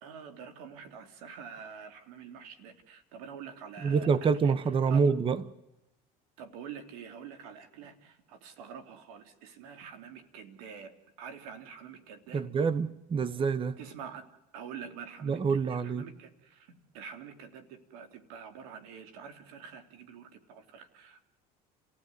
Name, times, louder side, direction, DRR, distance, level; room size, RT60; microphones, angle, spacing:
voice 1, 0.0-4.1 4.4-4.5 4.9-5.0 6.4-10.9 11.2-12.4 13.8-14.3 14.5-15.4 15.7-21.3, right 7 dB, 90° right, 2.9 m, -46 dB
voice 2, 3.8-5.4 12.3-13.8 15.2-16.1, right 5 dB, 30° right, 1.0 m, -27 dB
29.5 x 15.5 x 9.6 m
supercardioid pair, 110°, 18 cm